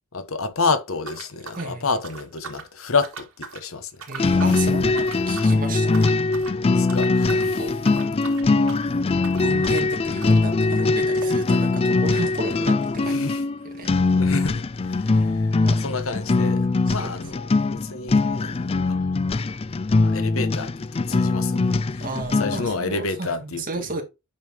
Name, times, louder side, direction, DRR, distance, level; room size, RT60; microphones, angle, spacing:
voice 1, 0.1-4.6 6.7-7.7 13.0-13.4 13.9-19.0 19.3-19.5 20.0-22.1 22.4-23.9, left 4 dB, 75° left, 1.2 m, -30 dB
sound 1, 1.0-2.7 3.0-3.7 4.0-4.7 5.0-5.6 5.9-6.6 6.9-7.5 7.8-13.5 13.8-13.9 14.1-14.2 14.8-14.9, right 5 dB, 90° right, 2.1 m, -41 dB
voice 2, 1.5-1.9 4.1-6.1 7.3-7.7 9.4-13.2 13.8-13.9 15.6-15.8 16.9-17.1 22.0-24.0, right 3 dB, 40° right, 2.4 m, -33 dB
sound 2, 4.2-22.7, left 3 dB, 25° left, 0.4 m, -22 dB
8.9 x 5.5 x 2.9 m
head